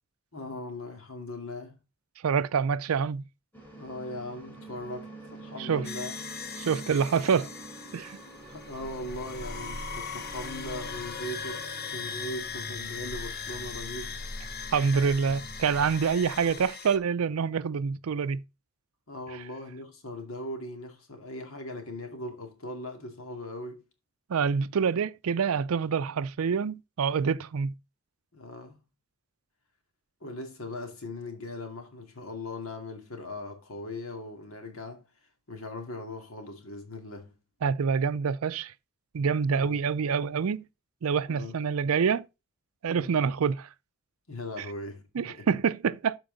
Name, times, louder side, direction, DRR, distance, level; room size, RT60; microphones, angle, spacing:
voice 1, 0.3-1.8 3.8-6.2 8.5-14.2 19.1-23.8 28.3-28.8 30.2-35.0 35.5-37.3 39.5-39.8 41.3-41.6 42.9-43.1 44.3-45.6, left 1 dB, 80° left, 2.3 m, -39 dB
voice 2, 2.2-3.2 5.6-5.9 6.6-7.5 7.9-8.2 14.7-18.4 19.3-19.4 24.3-27.7 37.6-38.7 39.1-40.6 41.0-42.3 42.8-43.7 44.6-44.7 45.1-46.2, right 6 dB, 85° right, 0.4 m, -26 dB
sound 1, 3.5-16.0, right 2 dB, 10° left, 2.9 m, -46 dB
sound 2, 5.8-17.0, left 5 dB, 45° left, 0.8 m, -39 dB
13.0 x 4.6 x 3.9 m
head